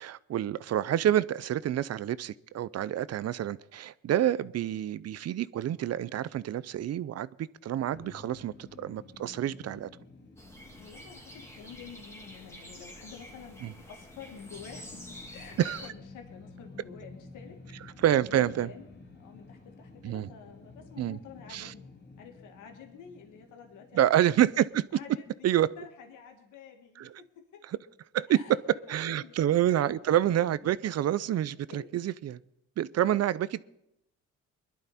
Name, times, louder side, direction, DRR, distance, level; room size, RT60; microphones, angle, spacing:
voice 1, 0.0-9.9 15.6-15.9 18.0-18.7 20.0-20.3 21.0-21.2 21.5-21.7 23.9-24.8 25.4-25.7 27.0-27.1 27.7-27.8 28.1-28.6 28.9-32.4 32.8-33.6, right 11 dB, 55° right, 18 dB, 0.6 m, -28 dB
sound 1, 7.9-25.1, left 3 dB, 35° left, 2.4 m, -52 dB
sound 2, 10.4-15.9, left 1 dB, 10° left, 2.3 m, -48 dB
voice 2, 10.8-15.0 15.3-17.6 18.3-18.9 19.1-21.9 22.2-24.1 24.9-27.6 28.3-29.4 29.6-30.0 30.6-30.9 31.7-31.9, left 7 dB, 85° left, 4 dB, 2.0 m, -49 dB
21.5 x 11.5 x 4.2 m, 0.81 s
cardioid pair, 90°, 30 cm